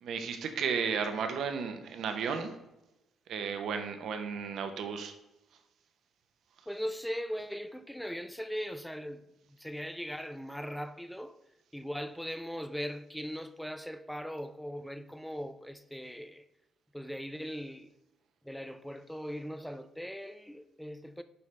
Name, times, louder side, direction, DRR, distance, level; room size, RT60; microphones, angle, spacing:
voice 1, 0.0-2.5 3.3-5.1, right 6 dB, 70° right, 0.8 m, -34 dB
voice 2, 6.7-9.2 9.6-11.4 11.7-16.4 16.9-17.9 18.4-21.2, equal, ahead, 0.4 m, -39 dB
6.9 x 4.9 x 3.3 m
cardioid pair, 90°, 0 cm